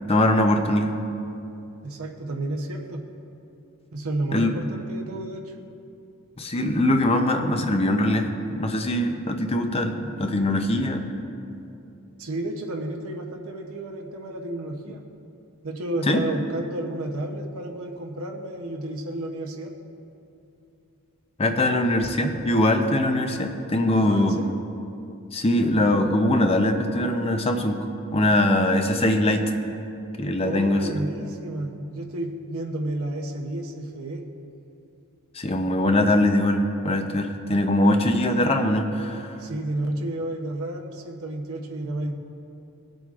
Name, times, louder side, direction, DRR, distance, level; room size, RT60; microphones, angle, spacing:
voice 1, 0.1-0.9 4.3-4.5 6.4-11.0 16.1-16.2 21.4-24.4 25.3-29.4 30.2-30.9 35.3-39.3, left 1 dB, 25° left, 5 dB, 0.6 m, -22 dB
voice 2, 1.8-3.0 3.9-5.5 12.2-15.0 15.6-19.7 24.0-24.6 30.4-34.2 39.4-42.1, right 1 dB, 75° right, 1 dB, 0.8 m, -31 dB
19.0 x 7.7 x 2.5 m, 2.7 s
head